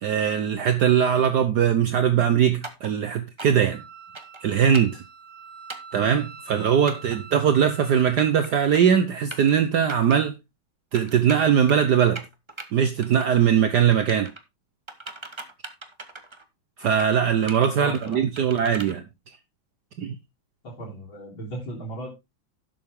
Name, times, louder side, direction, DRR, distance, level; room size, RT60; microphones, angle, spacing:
voice 1, 0.0-3.8 4.4-5.0 5.9-10.4 10.9-12.2 12.7-14.3 16.8-19.0 20.0-20.2, right 8 dB, 60° right, 1.3 m, -21 dB
sound 1, 2.6-2.9 3.4-3.7 4.1-4.4 4.7-5.0 5.7-6.0 6.9-7.2 7.9-8.5 8.7-9.0 9.3-9.5 9.9-10.2 10.9-11.9 12.2-12.7 13.0-13.5 13.7-14.4 14.9-16.4 16.8-17.1 17.5-18.9, right 2 dB, 20° right, 0.8 m, -39 dB
Wind instrument woodwind instrument, 3.7-8.8, right 5 dB, 80° right, 3.1 m, -45 dB
voice 2, 17.7-18.5 20.6-22.1, right 1 dB, 70° left, 4.3 m, -37 dB
11.5 x 7.8 x 3.6 m
omnidirectional pair, 2.3 m